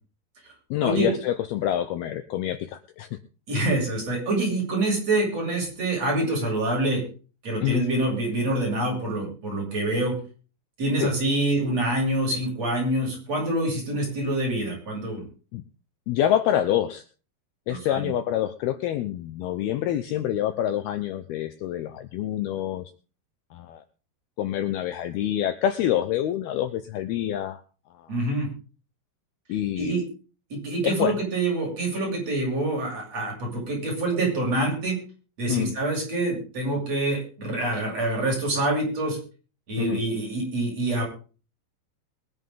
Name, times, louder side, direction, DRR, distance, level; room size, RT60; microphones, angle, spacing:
voice 1, 0.7-3.1 7.6-7.8 11.0-11.1 15.5-15.6 16.1-17.0 17.7-22.9 23.5-23.8 24.4-27.6 28.0-28.1 29.5-29.9 30.8-31.2 35.5-35.7 39.8-40.0, left 11 dB, 75° left, 10 dB, 2.5 m, -26 dB
voice 2, 3.5-7.0 7.4-10.2 10.8-15.2 17.7-18.1 28.1-28.5 29.8-30.0 30.5-35.0 35.4-39.2 39.7-41.0, right 2 dB, 35° right, -1 dB, 8.3 m, -26 dB
22.0 x 11.0 x 3.8 m, 0.37 s
omnidirectional pair, 5.1 m